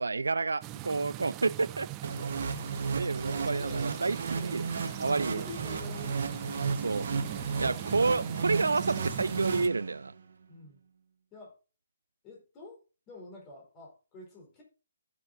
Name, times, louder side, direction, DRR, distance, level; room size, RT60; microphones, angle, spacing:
voice 1, 0.0-1.9 2.2-2.3 2.9-4.2 4.4-4.6 5.0-5.4 6.7-7.1 7.6-10.1, right 3 dB, 75° right, 0.4 m, -29 dB
sound 1, 0.6-9.7, right 15 dB, 25° right, 0.5 m, -41 dB
sound 2, 2.0-10.2, right 5 dB, 60° right, 1.3 m, -34 dB
voice 2, 3.2-3.9 4.3-4.7 5.0-6.3 10.5-10.8 11.3-11.5 12.2-12.8 13.1-14.6, left 3 dB, 25° left, 4.4 m, -47 dB
15.5 x 6.9 x 2.7 m
figure-of-eight pair, 140°, 0 cm